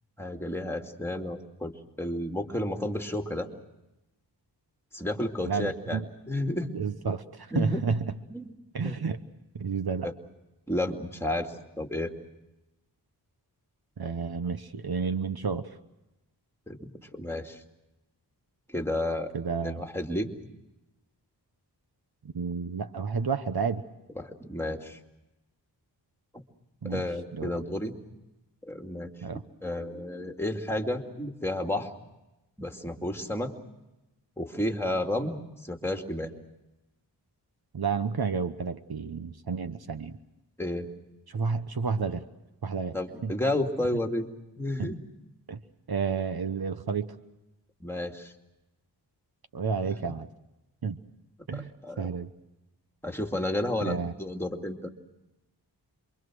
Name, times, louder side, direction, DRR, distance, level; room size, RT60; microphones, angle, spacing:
voice 1, 0.2-1.7 2.0-3.5 4.9-6.7 7.5-7.8 8.3-8.5 8.8-9.0 10.0-10.1 10.7-12.1 16.7-17.6 18.7-19.3 19.6-20.3 24.2-25.0 26.3-26.4 26.8-27.9 28.6-29.1 29.6-31.9 32.6-33.5 34.4-36.3 40.6-40.9 42.9-44.3 44.6-45.0 47.8-48.3 49.8-50.1 51.5-52.1 53.0-54.9, left 1 dB, 5° left, 3 dB, 2.6 m, -31 dB
voice 2, 5.5-6.0 6.7-8.0 8.7-9.2 9.5-10.1 14.0-15.8 19.3-19.9 22.3-23.8 26.8-27.1 27.3-27.5 29.2-29.4 37.7-40.2 41.3-42.2 42.6-43.0 43.2-43.3 44.8-44.9 45.5-45.6 45.9-47.1 49.5-50.3 50.8-51.0 51.5-51.7 52.0-52.3 53.8-54.1, right 5 dB, 60° right, 10 dB, 1.1 m, -31 dB
27.5 x 24.0 x 6.3 m, 0.99 s
wide cardioid pair, 70°, 42 cm